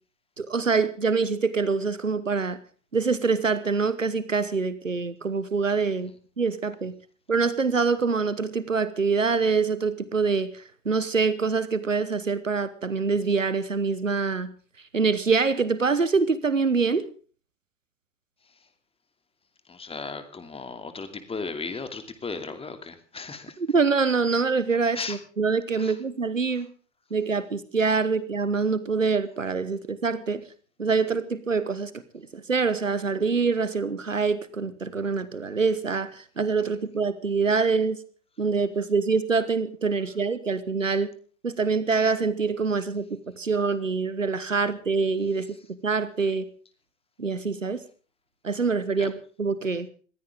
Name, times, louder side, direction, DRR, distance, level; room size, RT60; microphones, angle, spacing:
voice 1, 0.4-2.6 2.9-6.1 6.4-6.9 7.3-14.5 14.9-17.1 23.6-26.7 27.1-30.4 30.8-38.0 38.4-41.1 41.4-45.5 45.8-46.4 47.2-47.8 48.4-49.9, right 4 dB, 85° right, 15 dB, 1.2 m, -25 dB
voice 2, 19.7-23.6 24.9-25.2 25.8-25.9 49.0-49.1, left 4 dB, 15° left, 9 dB, 2.6 m, -36 dB
21.5 x 16.0 x 3.6 m, 0.41 s
figure-of-eight pair, 85°, 38 cm